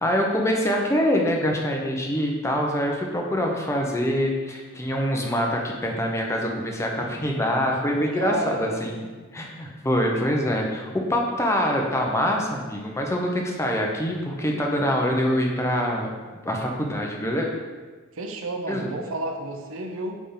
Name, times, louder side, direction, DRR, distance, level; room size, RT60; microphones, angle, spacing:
voice 1, 0.0-8.9 9.3-16.1 16.4-17.5 18.7-18.9, equal, 15° left, 0 dB, 0.8 m, -25 dB
voice 2, 8.1-9.1 18.1-20.2, right 2 dB, 70° right, 4 dB, 0.7 m, -31 dB
8.4 x 3.6 x 3.8 m, 1.4 s
head